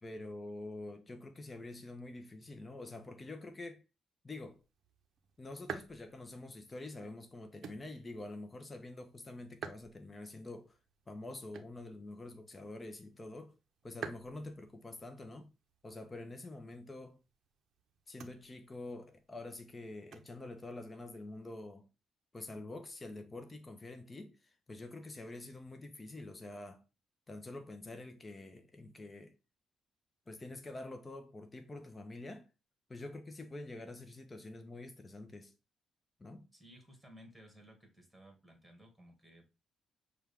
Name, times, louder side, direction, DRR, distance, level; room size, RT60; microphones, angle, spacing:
voice 1, 0.0-3.8 4.2-4.6 5.4-10.8 11.1-13.5 13.8-15.5 15.8-17.2 18.1-21.9 22.3-26.8 27.3-29.4 30.3-32.5 32.9-35.5 36.2-36.5, left 2 dB, 25° left, 0.7 m, -47 dB
sound 1, 4.4-21.5, right 7 dB, 65° right, 0.6 m, -53 dB
voice 2, 36.5-39.4, equal, 5° left, 1.8 m, -57 dB
6.1 x 2.3 x 3.5 m
cardioid pair, 90°, 0 cm